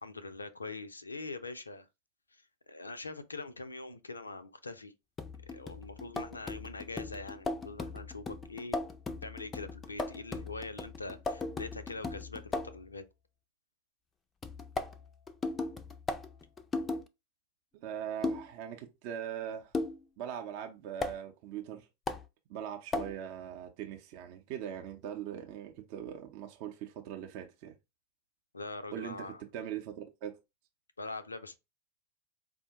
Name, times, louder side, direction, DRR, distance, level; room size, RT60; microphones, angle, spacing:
voice 1, 0.0-1.9 2.3-4.9 5.5-8.8 9.2-13.0 28.5-29.4 31.0-31.6, left 3 dB, 80° left, 0.4 m, -43 dB
sound 1, 5.2-12.8 14.4-17.1 18.2-18.5 19.7-20.0 21.0-21.2 22.1-22.3 22.9-23.2, left 3 dB, 20° left, 0.4 m, -37 dB
voice 2, 17.7-19.7 20.2-21.9 22.5-27.7 28.9-30.4, right 9 dB, 45° right, 0.6 m, -41 dB
4.7 x 2.1 x 2.8 m
figure-of-eight pair, 90°, 0 cm